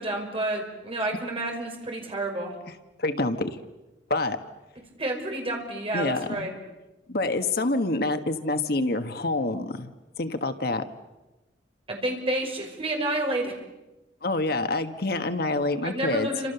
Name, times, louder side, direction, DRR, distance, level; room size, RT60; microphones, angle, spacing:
voice 1, 0.0-2.5 5.0-6.5 11.9-13.6 15.8-16.5, right 1 dB, 30° right, 1 dB, 5.6 m, -29 dB
voice 2, 3.0-3.5 4.1-4.4 5.9-6.5 7.1-9.9 10.2-10.8 14.2-16.3, left 2 dB, 55° left, 8 dB, 1.5 m, -27 dB
29.0 x 26.5 x 7.0 m, 1.1 s
head